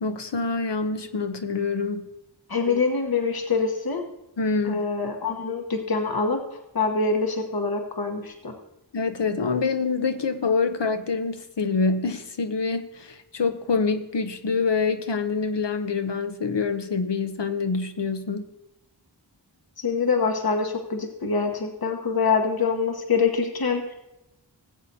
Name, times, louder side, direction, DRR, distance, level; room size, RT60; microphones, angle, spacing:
voice 1, 0.0-2.0 4.4-4.8 8.9-18.5, left 4 dB, 75° left, 0.8 m, -26 dB
voice 2, 2.5-4.0 4.6-8.5 19.8-23.9, left 4 dB, 55° left, 1.1 m, -25 dB
18.0 x 7.9 x 2.8 m
wide cardioid pair, 45°, 43 cm